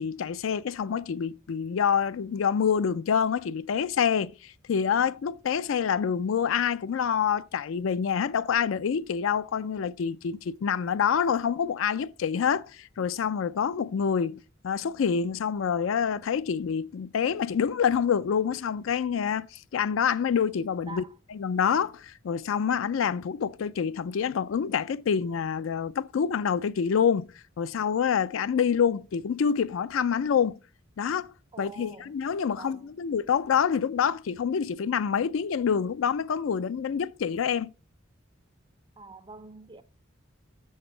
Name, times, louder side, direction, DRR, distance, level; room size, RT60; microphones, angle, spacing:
voice 1, 0.0-21.0 21.4-27.3 27.6-30.6 31.0-31.3 31.6-37.7, left 7 dB, 70° left, 0.4 m, -27 dB
voice 2, 31.5-32.1 32.6-32.9 39.0-39.8, right 3 dB, 25° right, 0.5 m, -45 dB
6.8 x 6.5 x 3.8 m
head